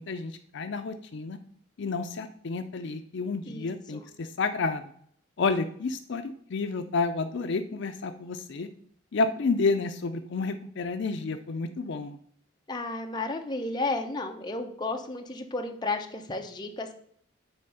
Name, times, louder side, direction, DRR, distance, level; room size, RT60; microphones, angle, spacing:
voice 1, 0.0-1.4 1.8-4.8 5.4-8.7 9.1-12.2, left 4 dB, 60° left, 8 dB, 0.5 m, -30 dB
voice 2, 3.5-4.0 12.7-16.9, left 2 dB, 20° left, 3 dB, 0.9 m, -33 dB
9.0 x 3.4 x 6.7 m, 0.63 s
head